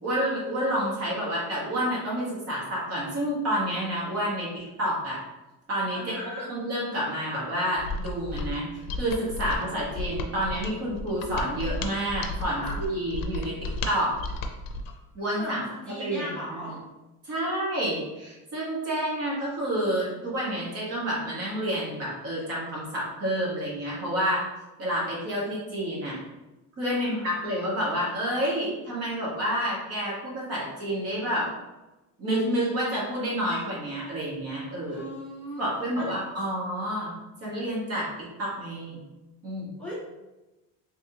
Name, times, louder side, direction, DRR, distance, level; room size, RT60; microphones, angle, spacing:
voice 1, 0.0-5.2 5.7-14.1 15.1-15.6 16.0-16.7 17.2-24.4 24.8-26.2 26.8-31.5 32.2-35.0 35.6-37.1 37.4-38.1 38.4-39.0 39.4-39.7, equal, 45° right, -6 dB, 1.4 m, -29 dB
voice 2, 5.9-6.5 12.5-12.7 15.4-16.8 26.9-27.4 34.8-35.7 35.9-36.0 39.8-39.9, equal, 5° left, -9 dB, 0.8 m, -38 dB
Mechanisms, 7.8-15.0, left 2 dB, 70° left, 0.5 m, -34 dB
3.3 x 3.2 x 2.8 m, 1.0 s
cardioid pair, 170°, 35 cm